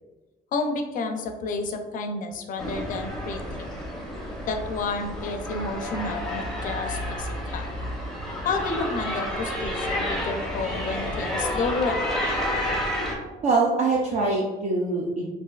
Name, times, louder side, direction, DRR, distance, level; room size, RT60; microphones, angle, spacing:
voice 1, 0.5-3.4 4.5-7.7 8.4-12.1, left 3 dB, 50° left, 5 dB, 0.4 m, -30 dB
sound 1, 2.6-13.1, left 1 dB, ahead, 0.6 m, -30 dB
voice 2, 13.4-15.3, right 3 dB, 45° right, -2 dB, 0.4 m, -23 dB
3.2 x 2.5 x 2.3 m, 1.2 s
cardioid pair, 110°, 17 cm